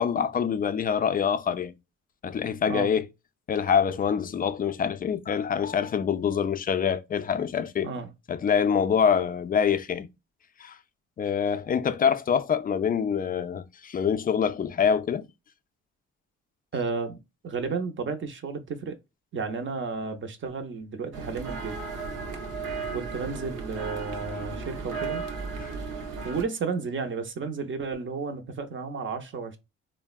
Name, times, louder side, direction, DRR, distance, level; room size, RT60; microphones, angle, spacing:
voice 1, 0.0-1.7 2.2-3.0 3.5-7.9 8.3-10.1 10.6-10.8 11.2-15.3 25.6-25.7, left 7 dB, 30° left, 0.4 m, -25 dB
voice 2, 16.7-17.2 17.4-19.0 19.3-21.8 22.9-25.2 26.2-29.6, right 4 dB, 40° right, 0.6 m, -32 dB
sound 1, 21.1-26.4, right 4 dB, 85° right, 0.8 m, -35 dB
3.4 x 2.1 x 2.3 m
cardioid pair, 90°, 30 cm